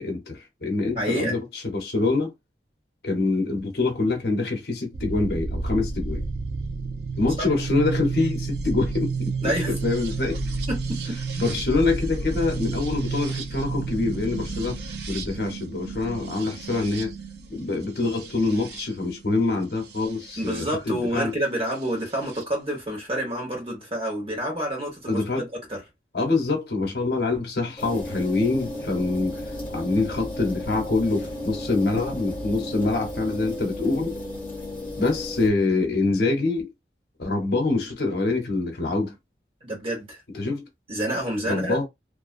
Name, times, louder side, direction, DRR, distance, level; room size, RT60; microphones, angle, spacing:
voice 1, 0.0-2.3 3.0-6.2 7.2-10.4 11.4-14.8 15.1-17.1 17.5-21.3 25.1-25.5 26.1-29.4 29.7-34.2 35.0-36.7 37.2-39.1 40.3-40.6 41.4-41.9, left 3 dB, 65° left, 0.8 m, -25 dB
voice 2, 0.9-1.4 7.4-7.5 9.4-9.7 10.7-11.2 12.3-12.4 20.4-25.8 39.6-40.2 40.9-41.8, right 1 dB, 30° right, 1.1 m, -28 dB
sound 1, 4.9-20.7 21.8-22.4, right 4 dB, 70° right, 0.5 m, -31 dB
sound 2, 27.8-35.5, left 1 dB, 10° left, 0.9 m, -34 dB
2.5 x 2.1 x 2.5 m
head